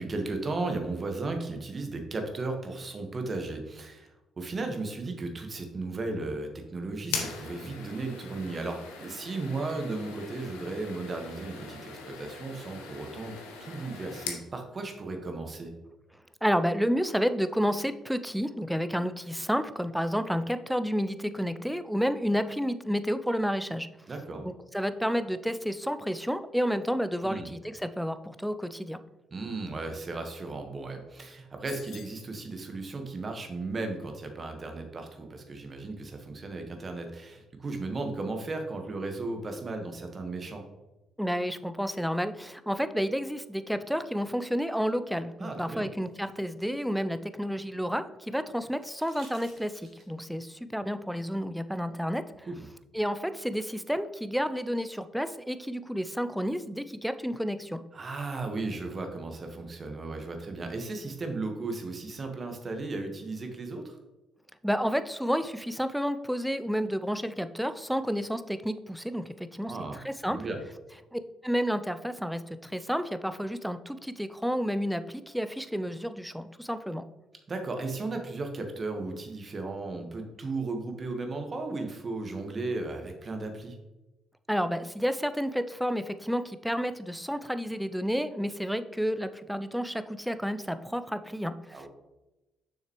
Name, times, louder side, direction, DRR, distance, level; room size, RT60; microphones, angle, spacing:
voice 1, 0.0-15.7 24.1-24.5 27.2-27.5 29.3-40.6 45.4-45.9 52.5-52.7 57.9-64.0 69.7-70.0 70.3-70.6 77.5-83.8 91.7-91.9, right 3 dB, 40° right, 4 dB, 1.4 m, -35 dB
sound 1, 7.0-14.5, left 5 dB, 80° left, 0.9 m, -40 dB
voice 2, 16.4-23.9 24.4-29.0 41.2-52.5 52.9-57.8 64.6-69.7 70.0-70.4 71.1-77.0 84.5-91.9, equal, ahead, 11 dB, 0.5 m, -30 dB
sound 2, 31.7-32.3, left 9 dB, 60° left, 0.5 m, -48 dB
sound 3, 46.0-47.9 48.8-50.3 52.0-52.1, right 3 dB, 60° right, 1.9 m, -57 dB
6.6 x 6.3 x 3.1 m, 1.0 s
hypercardioid pair, 45°, 0 cm